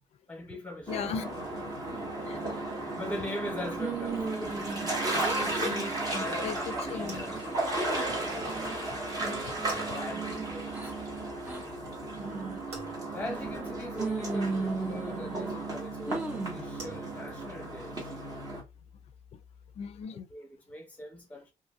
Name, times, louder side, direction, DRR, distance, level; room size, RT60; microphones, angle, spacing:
voice 1, 0.3-1.2 1.9-2.0 2.9-7.4 9.2-11.3 13.1-18.2 20.3-21.5, left 1 dB, 10° left, 0.9 m, -41 dB
voice 2, 0.9-1.7 2.2-2.4 6.4-6.6 6.9-7.2 8.4-8.5 8.9-9.0 19.3-19.4 19.7-20.3, left 6 dB, 55° left, 0.4 m, -37 dB
sound 1, 0.9-18.6, right 2 dB, 30° right, 1.1 m, -35 dB
sound 2, 3.8-4.9 5.2-5.7 6.1-6.5 7.0-7.5 8.0-8.8 9.2-10.9 11.4-11.6 12.2-12.6 13.2-13.7 14.0-15.6 16.1-16.7, right 3 dB, 10° right, 0.5 m, -36 dB
sound 3, 6.5-20.0, equal, 55° right, 1.5 m, -52 dB
2.7 x 2.7 x 2.3 m
cardioid pair, 160°, 13 cm